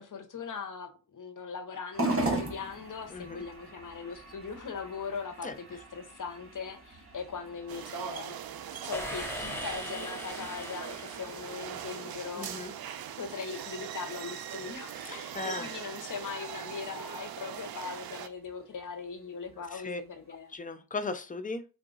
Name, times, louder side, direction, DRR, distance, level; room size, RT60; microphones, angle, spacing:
voice 1, 0.0-8.4 8.6-12.5 13.2-20.5, left 5 dB, 55° left, 0.7 m, -40 dB
sound 1, 1.9-20.5, right 2 dB, 35° right, 1.3 m, -41 dB
voice 2, 3.1-3.4 5.4-5.6 12.3-12.7 15.0-15.7 19.7-20.0 20.5-21.6, left 3 dB, 20° left, 0.4 m, -37 dB
sound 2, 7.7-18.3, right 9 dB, 70° right, 0.5 m, -41 dB
sound 3, 8.9-12.1, equal, 5° left, 0.9 m, -40 dB
3.8 x 2.3 x 3.8 m
wide cardioid pair, 80°, 37 cm